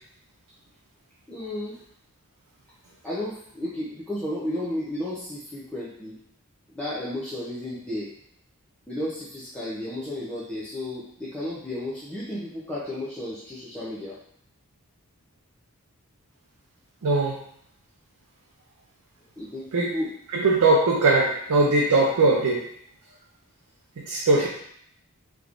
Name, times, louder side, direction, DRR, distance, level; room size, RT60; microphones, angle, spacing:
voice 1, 1.3-1.7 3.0-6.2 6.7-8.1 8.9-14.1 19.4-20.1 24.3-24.5, left 1 dB, 5° left, -10 dB, 0.6 m, -33 dB
voice 2, 17.0-17.4 19.7-20.0 20.3-22.6 24.1-24.5, right 2 dB, 85° right, -2 dB, 0.5 m, -20 dB
3.5 x 3.0 x 2.5 m, 0.67 s
head